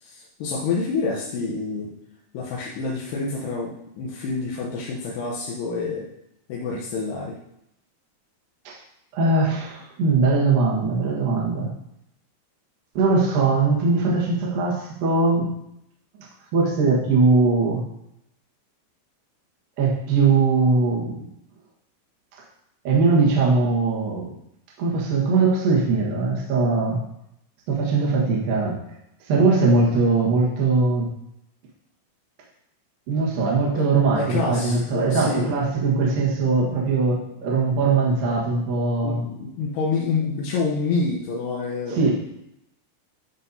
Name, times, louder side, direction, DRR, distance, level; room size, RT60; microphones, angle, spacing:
voice 1, 0.0-1.9 2.3-6.1 6.5-7.4 33.7-33.9 34.2-35.6 39.0-42.1, left 4 dB, 90° left, -3 dB, 2.3 m, -27 dB
voice 2, 9.1-11.7 12.9-15.5 16.1-16.3 16.5-17.9 19.8-21.3 22.8-24.4 24.8-27.0 27.7-28.8 29.2-31.1 33.1-39.2 41.9-42.1, right 3 dB, 65° right, -3 dB, 2.3 m, -21 dB
12.0 x 5.6 x 2.7 m, 0.82 s
omnidirectional pair, 6.0 m